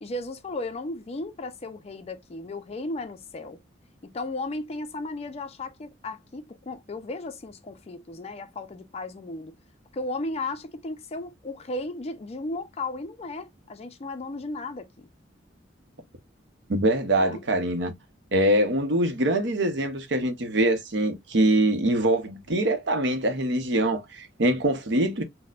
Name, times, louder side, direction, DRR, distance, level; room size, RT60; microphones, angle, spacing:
voice 1, 0.0-3.6 4.0-9.5 9.9-15.1 17.2-17.4, left 2 dB, 35° left, 0.4 m, -35 dB
voice 2, 16.7-17.9 18.3-25.2, right 1 dB, 65° right, 0.7 m, -24 dB
4.1 x 2.1 x 2.3 m
head